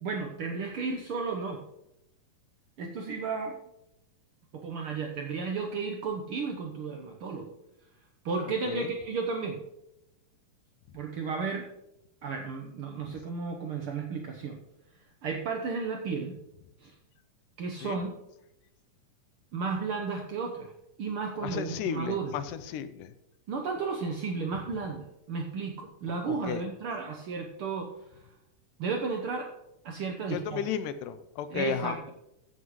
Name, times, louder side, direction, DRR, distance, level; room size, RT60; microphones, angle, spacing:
voice 1, 0.0-1.6 2.8-3.6 4.5-7.5 8.2-9.6 10.9-11.7 12.2-14.6 15.2-16.4 16.8-16.9 17.6-18.1 19.5-20.7 21.0-22.3 23.5-28.3 28.8-29.5 29.8-30.6 31.5-32.1, right 4 dB, 80° right, 2 dB, 1.2 m, -33 dB
voice 2, 21.4-23.1 26.2-26.6 30.3-32.0, left 9 dB, 85° left, 12 dB, 2.2 m, -34 dB
15.0 x 8.0 x 3.1 m, 0.86 s
omnidirectional pair, 3.7 m